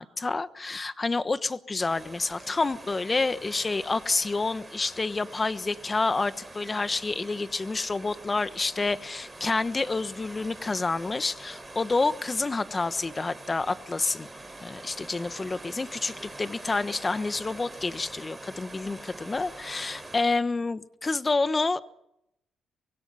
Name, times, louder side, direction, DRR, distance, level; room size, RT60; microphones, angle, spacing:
voice 1, 0.0-14.3 14.6-21.8, left 3 dB, 25° left, 13 dB, 1.2 m, -28 dB
sound 1, 1.8-20.2, right 2 dB, 15° right, 5.0 m, -45 dB
25.0 x 22.5 x 5.7 m, 0.80 s
cardioid pair, 90°, 0 cm